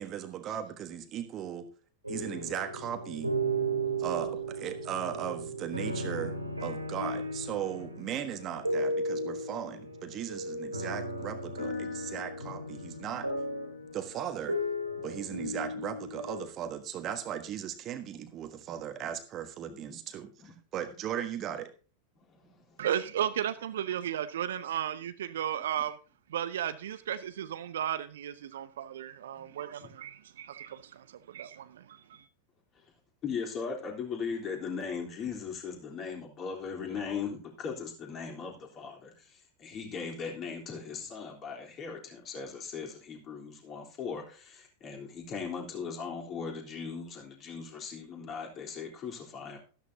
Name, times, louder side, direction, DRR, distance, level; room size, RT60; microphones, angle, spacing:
voice 1, 0.0-1.7 2.1-3.3 4.0-6.3 6.6-13.3 13.9-14.6 15.0-21.7, right 9 dB, 30° right, 1.3 m, -37 dB
sound 1, 2.0-16.5, right 1 dB, 85° right, 2.9 m, -35 dB
voice 2, 22.8-26.0 26.3-32.2, right 10 dB, 60° right, 0.7 m, -34 dB
voice 3, 33.2-49.6, left 5 dB, 30° left, 3.6 m, -38 dB
13.0 x 12.5 x 2.8 m
figure-of-eight pair, 90°, 0 cm